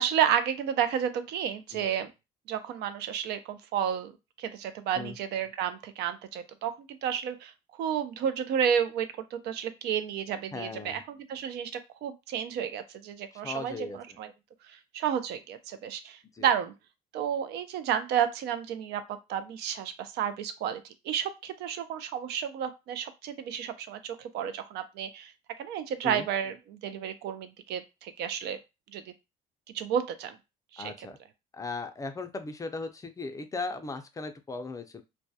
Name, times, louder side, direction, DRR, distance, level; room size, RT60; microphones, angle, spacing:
voice 1, 0.0-2.1 2.5-4.1 4.4-14.3 14.7-16.7 17.1-19.0 19.3-25.3 25.6-28.6 28.9-29.0 29.7-30.4 30.7-31.1, right 9 dB, 80° right, 10 dB, 0.4 m, -31 dB
voice 2, 10.5-11.0 13.3-14.2 16.3-16.5 26.0-26.3 30.8-31.2 31.5-35.0, left 3 dB, 20° left, 7 dB, 0.3 m, -37 dB
2.2 x 2.0 x 2.7 m, 0.25 s
cardioid pair, 110°, 17 cm